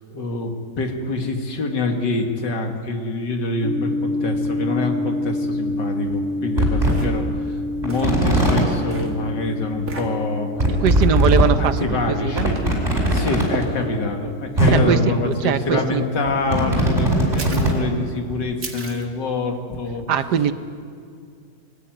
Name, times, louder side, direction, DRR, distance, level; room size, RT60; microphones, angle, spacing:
voice 1, 0.1-10.7 11.3-12.8 13.1-20.0, left 3 dB, 80° left, 3 dB, 2.6 m, -26 dB
sound 1, 3.6-15.0, left 2 dB, 60° left, 1.4 m, -29 dB
sound 2, 4.3-4.5 5.5-5.6 6.1-6.2 6.6-6.9 7.8-8.6 9.7-9.8 10.0-10.1 10.6-11.4 11.9-12.0 12.3-13.4 14.3-14.4 14.6-14.7 16.0-17.8 18.3-18.4, right 1 dB, 25° right, 5.1 m, -19 dB
Footsteps Walk, 6.1-6.2 6.9-7.2 7.9-8.2 8.9-9.1 9.9-10.1 11.4-11.6 12.4-12.7 13.5-13.8 14.7-14.9 15.8-16.0 17.4-17.8 18.6-19.0, right 3 dB, 50° right, 2.4 m, -31 dB
voice 2, 10.8-12.5 14.7-16.0 20.1-20.5, right 8 dB, 70° right, 11 dB, 1.4 m, -21 dB
22.5 x 14.0 x 9.2 m, 2.3 s
omnidirectional pair, 1.9 m